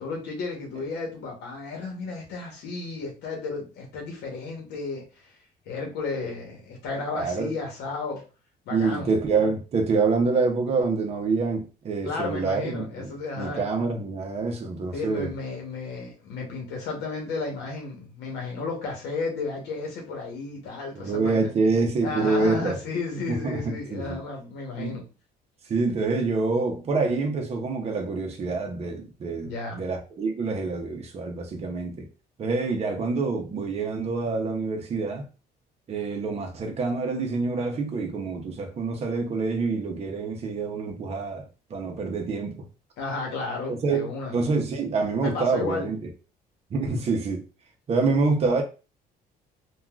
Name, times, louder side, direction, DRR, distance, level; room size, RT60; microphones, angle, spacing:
voice 1, 0.0-5.3 5.7-8.2 8.7-9.1 12.0-13.6 14.9-21.5 22.0-25.0 29.4-29.8 43.0-44.3 45.2-45.9 46.8-47.1, left 3 dB, 85° left, 0.9 m, -33 dB
voice 2, 7.1-7.5 8.7-13.1 13.4-15.3 20.9-22.8 23.3-24.2 24.7-25.0 25.6-32.1 32.4-35.3 35.9-41.4 41.7-42.7 43.8-46.1 46.7-47.4 47.9-48.6, right 4 dB, 40° right, 0.7 m, -26 dB
3.5 x 2.3 x 2.3 m
cardioid pair, 110°, 17 cm